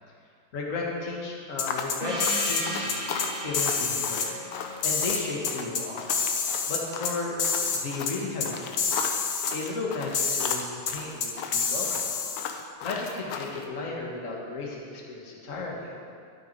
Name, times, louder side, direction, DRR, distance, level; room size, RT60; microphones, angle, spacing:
voice 1, 0.5-3.0 3.4-4.3 4.8-6.2 6.7-9.0 9.5-12.1 12.8-15.9, left 3 dB, 40° left, -2 dB, 1.8 m, -34 dB
sound 1, 1.6-2.6 2.9-3.3 3.5-4.3 4.8-5.8 6.1-7.1 7.4-7.8 8.1-8.2 8.4-8.5 8.8-9.5 10.1-10.6 10.9-11.0 11.2-12.5, left 5 dB, 60° left, 1.6 m, -27 dB
sound 2, 1.7-13.6, left 6 dB, 85° left, 1.6 m, -36 dB
Gong, 2.0-6.3, right 1 dB, 40° right, 1.5 m, -36 dB
12.5 x 8.7 x 4.6 m, 2.3 s
omnidirectional pair, 2.3 m